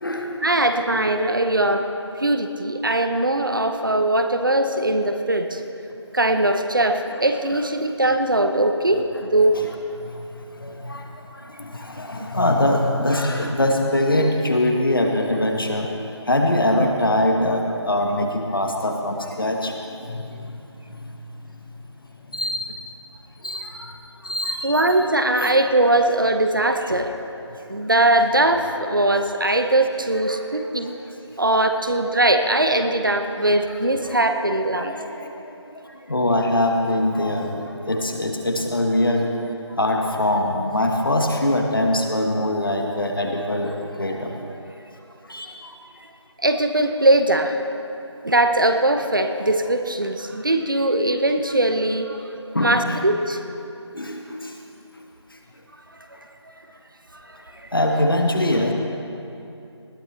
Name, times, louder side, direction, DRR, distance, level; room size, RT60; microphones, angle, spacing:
voice 1, 0.4-1.8 2.2-5.6 6.1-9.0 9.3-9.6 24.6-27.1 27.7-30.9 31.4-34.9 46.4-47.6 48.2-52.3 52.6-53.4 55.9-56.1 57.1-57.7, right 1 dB, 45° right, 6 dB, 0.9 m, -20 dB
voice 2, 10.6-11.0 11.4-15.9 16.3-20.6 20.9-21.1 22.3-22.7 23.4-23.9 24.2-24.7 25.5-25.6 30.3-30.4 34.7-35.3 36.1-37.5 37.9-39.3 39.8-44.4 45.3-45.5 52.5-53.0 53.9-54.5 57.7-58.7, left 1 dB, 50° left, 2 dB, 1.5 m, -23 dB
20.0 x 13.5 x 3.3 m, 2.8 s
figure-of-eight pair, 175°, 15 cm